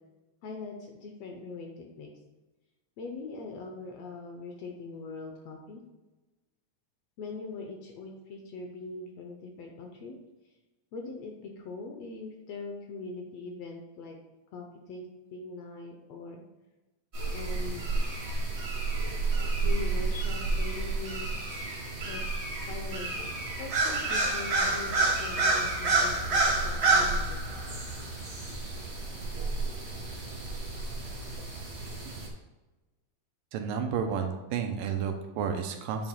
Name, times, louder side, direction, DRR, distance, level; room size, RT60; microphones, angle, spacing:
voice 1, 0.4-2.1 3.0-5.8 7.2-10.2 10.9-14.2 14.5-16.4 17.3-17.8 19.6-21.4 22.1-22.2 22.7-23.1 23.6-27.4, left 3 dB, 75° left, 2 dB, 1.5 m, -41 dB
sound 1, 17.1-32.3, right 3 dB, 55° right, 0.7 m, -29 dB
voice 2, 33.5-36.1, right 7 dB, 85° right, 5 dB, 2.3 m, -31 dB
9.3 x 7.0 x 2.3 m, 1.1 s
omnidirectional pair, 3.8 m